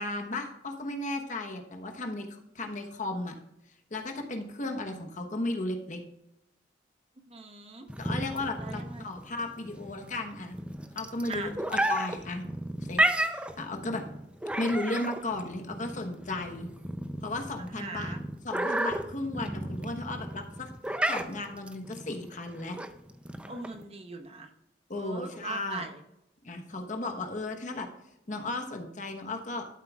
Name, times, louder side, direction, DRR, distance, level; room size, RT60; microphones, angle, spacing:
voice 1, 0.0-3.3 3.9-6.0 8.0-10.6 10.9-12.5 12.9-14.0 14.6-16.7 17.2-18.2 18.4-20.7 21.1-22.8 24.9-25.8 26.4-27.9 28.3-29.7, left 2 dB, 45° left, 4 dB, 1.1 m, -35 dB
voice 2, 7.2-7.9 8.6-9.1 11.3-11.5 17.7-18.2 23.5-24.5 25.0-26.0 26.7-27.0, right 3 dB, 35° right, 6 dB, 0.9 m, -41 dB
sound 1, 7.9-23.8, right 1 dB, 5° right, 0.5 m, -33 dB
12.5 x 7.6 x 2.4 m, 0.85 s
head